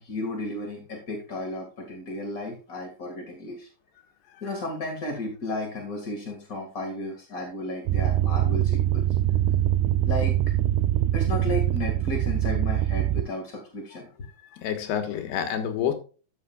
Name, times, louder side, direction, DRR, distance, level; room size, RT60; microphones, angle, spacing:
voice 1, 0.0-3.7 4.4-9.1 10.0-10.4 11.1-14.1, left 2 dB, 40° left, 1.3 m, -33 dB
sound 1, 7.9-13.2, right 12 dB, 80° right, 2.5 m, -23 dB
voice 2, 14.5-15.9, left 9 dB, 80° left, 3.4 m, -29 dB
13.5 x 8.1 x 2.4 m
omnidirectional pair, 4.8 m